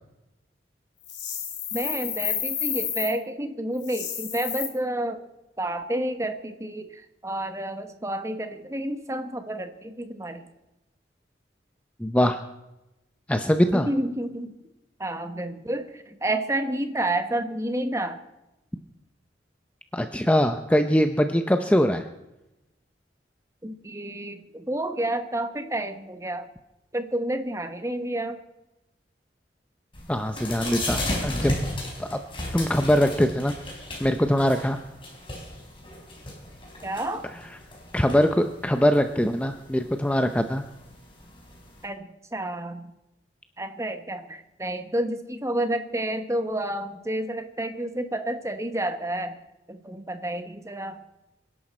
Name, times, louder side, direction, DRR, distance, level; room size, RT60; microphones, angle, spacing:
sound 1, 1.0-3.1 3.8-4.7, left 9 dB, 85° left, 3.2 m, -30 dB
voice 1, 1.7-5.2 5.6-10.4 13.7-14.6 15.0-18.2 23.6-26.5 26.9-28.4 36.8-37.3 41.8-42.9 43.6-49.4 49.7-51.0, right 1 dB, 15° right, 8 dB, 1.1 m, -30 dB
voice 2, 12.0-12.4 13.3-13.9 19.9-22.0 30.1-31.6 32.0-32.2 32.5-33.5 34.0-34.8 37.9-40.6, equal, 5° left, 7 dB, 0.6 m, -22 dB
sound 2, 29.9-41.8, left 1 dB, 30° left, 4.1 m, -35 dB
26.0 x 11.0 x 4.3 m, 0.96 s
head